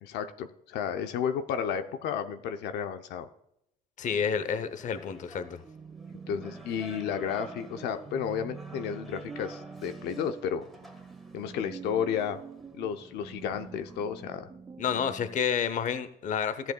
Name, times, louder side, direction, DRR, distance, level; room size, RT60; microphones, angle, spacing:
voice 1, 0.0-3.3 6.3-10.6 11.3-12.4 12.7-14.5, left 8 dB, 80° left, 8 dB, 0.7 m, -32 dB
voice 2, 4.0-5.6 14.8-16.7, left 7 dB, 50° left, 12 dB, 0.7 m, -30 dB
sound 1, 4.0-14.0, equal, ahead, 1.4 m, -52 dB
sound 2, 5.5-15.4, right 5 dB, 20° right, 0.4 m, -46 dB
14.0 x 7.7 x 2.3 m, 0.77 s
cardioid pair, 110°, 17 cm